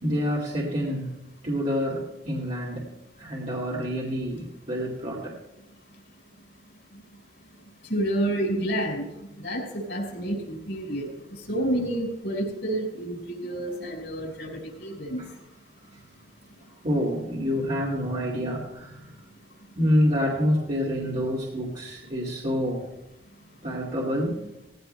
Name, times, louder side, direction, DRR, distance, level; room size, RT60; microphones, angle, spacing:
voice 1, 0.0-1.2 1.4-2.9 3.2-5.4 15.2-15.3 15.9-16.0 16.8-19.3 19.7-22.9 23.6-24.4, equal, 40° right, -4 dB, 2.3 m, -27 dB
voice 2, 7.9-9.1 9.4-11.1 11.5-15.2, right 1 dB, 70° left, 0 dB, 4.7 m, -29 dB
18.5 x 15.5 x 2.2 m, 0.96 s
head